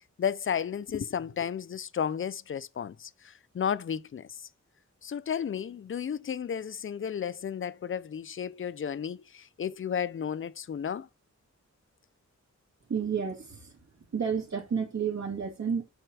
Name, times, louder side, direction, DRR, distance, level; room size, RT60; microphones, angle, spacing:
voice 1, 0.2-4.5 5.0-11.1, left 8 dB, 45° left, 0.5 m, -33 dB
voice 2, 12.9-13.7 14.1-15.8, right 6 dB, 70° right, 2.8 m, -31 dB
7.9 x 4.3 x 6.1 m
wide cardioid pair, 145°, 29 cm